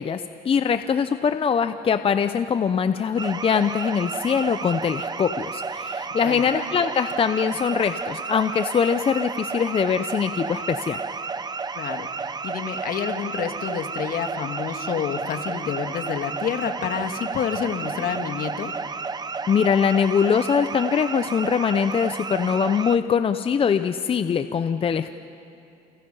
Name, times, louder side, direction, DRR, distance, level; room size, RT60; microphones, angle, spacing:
voice 1, 0.0-11.0 19.5-25.1, left 7 dB, 35° left, 11 dB, 0.6 m, -22 dB
sound 1, 3.2-23.0, right 4 dB, 25° right, 0.8 m, -32 dB
voice 2, 11.7-12.1 12.4-18.7, left 8 dB, 60° left, 7 dB, 1.8 m, -29 dB
29.5 x 29.0 x 5.6 m, 2.7 s
cardioid pair, 110°, 17 cm